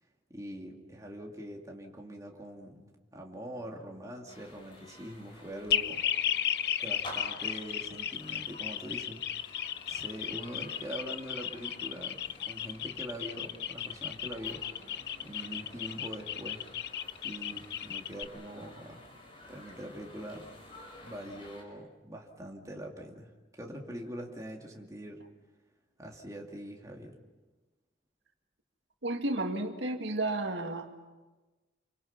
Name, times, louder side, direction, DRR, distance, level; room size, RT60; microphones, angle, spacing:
voice 1, 0.3-6.0 6.8-14.6 15.2-16.6 17.2-19.0 19.5-20.5 21.0-25.2 26.0-27.1, equal, 20° right, 0 dB, 2.5 m, -43 dB
sound 1, 4.3-21.6, left 1 dB, 30° left, 5.7 m, -51 dB
sound 2, 5.7-18.2, left 10 dB, 60° left, 0.7 m, -34 dB
voice 2, 29.0-30.9, right 2 dB, 85° right, 4 dB, 2.1 m, -32 dB
29.5 x 24.0 x 5.8 m, 1.2 s
head